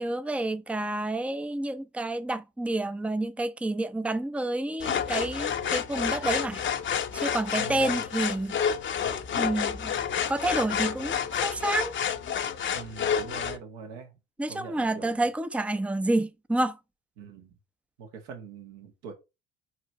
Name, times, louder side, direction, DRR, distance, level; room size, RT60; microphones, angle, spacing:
voice 1, 0.0-6.6 7.1-8.6 9.4-10.0 10.3-11.9 14.4-16.8, right 2 dB, 5° right, 0.6 m, -29 dB
sound 1, 4.8-13.6, left 8 dB, 40° left, 0.9 m, -29 dB
voice 2, 7.6-8.0 12.7-14.2 14.5-15.2 17.2-17.5 18.0-19.1, right 6 dB, 75° right, 2.0 m, -43 dB
4.8 x 4.8 x 4.6 m
hypercardioid pair, 65°, 29 cm